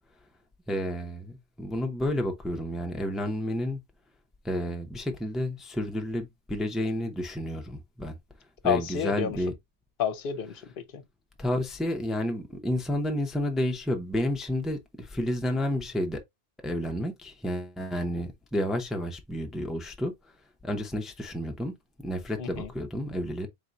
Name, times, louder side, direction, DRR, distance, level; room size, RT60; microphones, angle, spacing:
voice 1, 0.7-3.8 4.4-8.2 8.6-9.5 11.4-16.2 16.6-20.1 20.6-21.7 22.0-23.5, equal, ahead, 0.5 m, -30 dB
voice 2, 8.6-9.4 10.0-11.0 22.4-22.7, left 8 dB, 65° left, 0.8 m, -30 dB
4.3 x 3.6 x 2.5 m
omnidirectional pair, 1.0 m